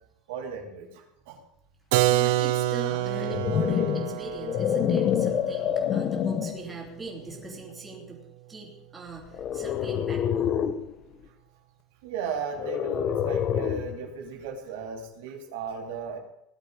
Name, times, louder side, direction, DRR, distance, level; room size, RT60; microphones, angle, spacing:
voice 1, 0.3-1.4 12.0-16.2, right 6 dB, 90° right, 1 dB, 3.3 m, -36 dB
Keyboard (musical), 1.9-7.5, right 15 dB, 70° right, 0.7 m, -28 dB
voice 2, 2.1-8.2 8.5-10.5, right 3 dB, 10° right, -2 dB, 3.0 m, -41 dB
sound 1, 3.0-6.7 7.3-7.6 9.3-10.9 12.5-14.0, left 9 dB, 30° left, 0.9 m, -27 dB
17.5 x 11.5 x 4.9 m, 0.79 s
cardioid pair, 175°, 0 cm